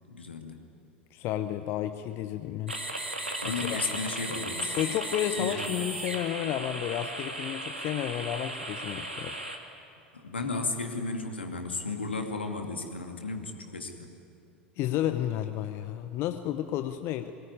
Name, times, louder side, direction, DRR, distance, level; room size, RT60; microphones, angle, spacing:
voice 1, 0.1-0.6 3.4-4.8 5.4-5.7 10.1-14.1, left 3 dB, 80° left, 4 dB, 2.4 m, -34 dB
voice 2, 1.1-2.8 3.5-3.8 4.8-9.4 14.8-17.3, left 12 dB, 45° left, 9 dB, 0.9 m, -32 dB
sound 1, 2.7-9.6, right 1 dB, 85° right, 2.2 m, -36 dB
23.5 x 19.0 x 9.8 m, 2.5 s
figure-of-eight pair, 80°, 6 cm